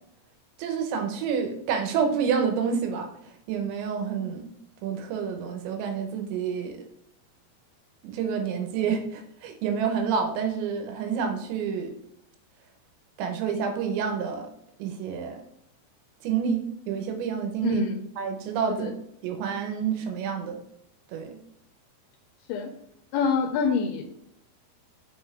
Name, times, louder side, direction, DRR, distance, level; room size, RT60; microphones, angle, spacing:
voice 1, 0.6-3.1 3.5-4.5 4.8-6.9 8.0-11.9 13.2-14.5 14.8-15.4 16.2-17.8 18.2-18.9 19.2-20.6 21.1-21.4, right 6 dB, 85° right, 5 dB, 3.3 m, -28 dB
voice 2, 17.6-17.9 18.7-18.9 22.5-22.7 23.1-24.1, left 5 dB, 80° left, 4 dB, 2.4 m, -26 dB
6.2 x 5.6 x 3.6 m, 0.76 s
omnidirectional pair, 5.1 m